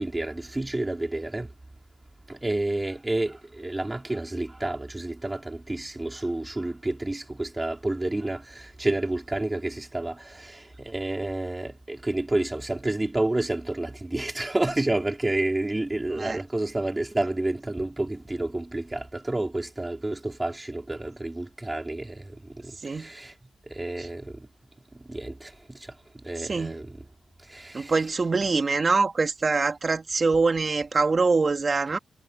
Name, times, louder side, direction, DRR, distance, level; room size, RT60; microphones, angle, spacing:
voice 1, 0.0-1.5 2.3-23.3 23.7-24.5 24.9-27.1 27.4-27.9, right 2 dB, 15° right, 4.4 m, -30 dB
voice 2, 27.7-32.0, right 4 dB, 35° right, 2.6 m, -24 dB
cardioid pair, 120°, 0 cm